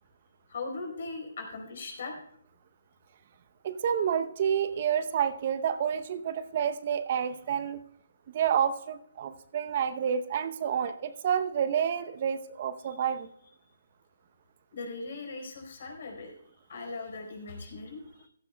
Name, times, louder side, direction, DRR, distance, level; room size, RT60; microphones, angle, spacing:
voice 1, 0.5-2.2 12.8-13.0 14.7-16.3 16.7-18.3, left 3 dB, 55° left, 3 dB, 4.5 m, -39 dB
voice 2, 3.6-7.8 8.3-13.3, right 8 dB, 45° right, 11 dB, 0.8 m, -29 dB
15.5 x 14.5 x 2.3 m, 0.71 s
figure-of-eight pair, 145°, 0 cm